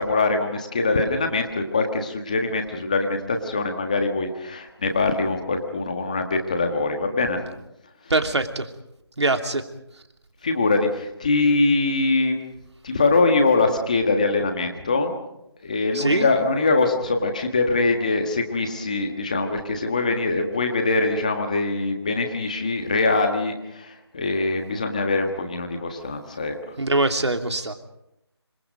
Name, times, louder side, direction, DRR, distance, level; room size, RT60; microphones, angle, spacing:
voice 1, 0.0-7.4 10.4-12.4 12.8-15.1 15.6-26.5, left 3 dB, 15° left, 5 dB, 1.5 m, -23 dB
voice 2, 8.1-8.7 9.2-9.6 15.9-16.3 26.8-27.7, right 2 dB, 75° right, 6 dB, 3.0 m, -22 dB
27.0 x 25.0 x 5.3 m, 0.83 s
figure-of-eight pair, 180°, 15 cm